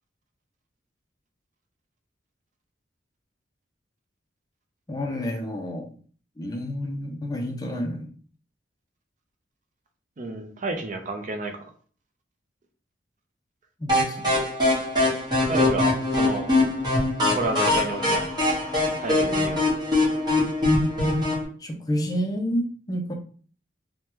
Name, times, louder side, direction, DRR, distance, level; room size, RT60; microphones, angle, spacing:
voice 1, 4.9-6.0 6.4-8.1 13.8-14.4 21.6-23.1, equal, 20° left, 4 dB, 0.4 m, -29 dB
voice 2, 10.2-11.7 15.5-16.5 17.3-18.3 19.0-19.6, right 2 dB, 45° right, 5 dB, 0.5 m, -30 dB
sound 1, 13.9-21.5, left 2 dB, 25° right, 1.1 m, -23 dB
3.3 x 2.1 x 2.9 m, 0.43 s
head